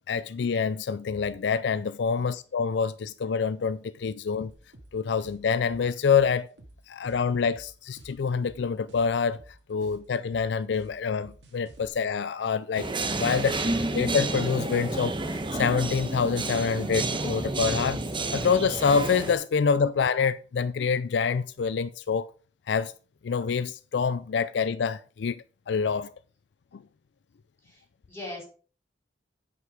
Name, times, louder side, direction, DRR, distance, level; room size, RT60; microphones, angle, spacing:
voice 1, 0.1-4.5 4.9-6.5 6.9-9.4 9.7-13.6 13.9-18.0 18.3-22.3 22.7-22.9 23.2-26.1 26.7-26.8, left 6 dB, 75° left, 0.4 m, -26 dB
sound 1, 4.5-11.9, right 1 dB, 80° right, 2.0 m, -51 dB
sound 2, 12.7-19.3, right 2 dB, 30° right, 1.1 m, -30 dB
voice 2, 27.6-28.4, left 2 dB, 15° left, 5.4 m, -42 dB
9.4 x 5.9 x 5.0 m
head